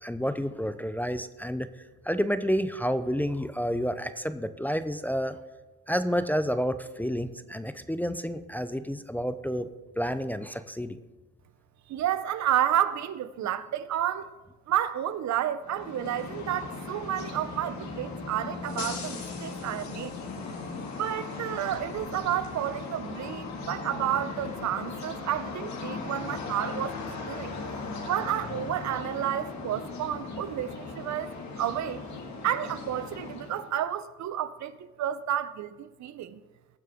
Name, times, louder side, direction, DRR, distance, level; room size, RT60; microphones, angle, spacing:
voice 1, 0.0-1.7 2.0-5.4 5.9-9.7 10.0-11.0, equal, 5° left, 0.5 m, -29 dB
voice 2, 11.9-14.3 14.7-20.1 21.0-27.5 28.1-31.3 31.6-32.0 32.4-36.4, right 11 dB, 65° right, 0.7 m, -31 dB
sound 1, 15.6-33.7, left 4 dB, 65° left, 2.1 m, -38 dB
20.0 x 7.4 x 3.6 m
cardioid pair, 90°, 30 cm